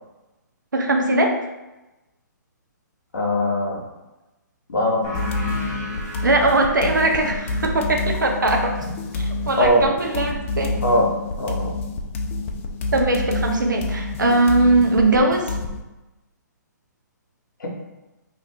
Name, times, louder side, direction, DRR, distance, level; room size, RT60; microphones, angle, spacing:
voice 1, 0.7-1.4 6.2-8.8 9.1-10.8 12.9-15.6, right 2 dB, 85° right, 3 dB, 0.6 m, -20 dB
voice 2, 3.1-3.8 4.7-5.0 9.6-9.9 10.8-11.1 11.4-11.7 17.6-17.7, equal, 80° left, 0 dB, 0.8 m, -20 dB
sound 1, 5.0-10.2, equal, 25° right, 0.7 m, -37 dB
sound 2, 5.1-15.8, left 3 dB, 40° left, 0.4 m, -28 dB
2.7 x 2.5 x 3.3 m, 1.0 s
figure-of-eight pair, 135°, 10 cm